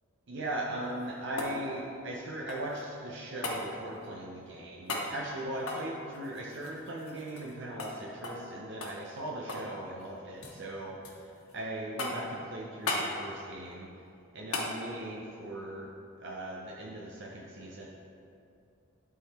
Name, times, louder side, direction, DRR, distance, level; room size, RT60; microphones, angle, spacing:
voice 1, 0.3-13.9 14.3-15.9 16.2-17.9, right 1 dB, 55° right, -3 dB, 0.7 m, -39 dB
sound 1, 0.8-2.8 3.4-3.6 4.9-5.1 5.6-7.5 7.8-7.9 8.2-8.5 8.8-9.7 10.0-10.6 11.0-11.6 12.0-12.4 12.9-13.1 14.5-14.7 17.1-17.2, left 2 dB, 90° left, 1.1 m, -37 dB
11.5 x 3.9 x 4.3 m, 2.6 s
head